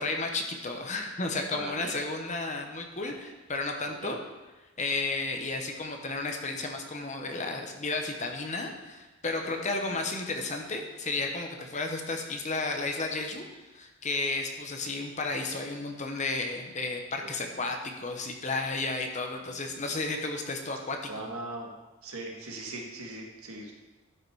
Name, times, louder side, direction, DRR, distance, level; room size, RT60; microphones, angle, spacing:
voice 1, 0.0-4.2 4.8-13.4 13.7-21.3, left 3 dB, 30° left, 3 dB, 0.9 m, -33 dB
voice 2, 1.5-1.9 4.0-4.1 9.4-10.0 17.5-17.7 19.4-19.9 21.1-21.7 22.0-23.7, right 2 dB, 75° right, 1 dB, 1.6 m, -41 dB
12.0 x 5.8 x 4.7 m, 1.1 s
head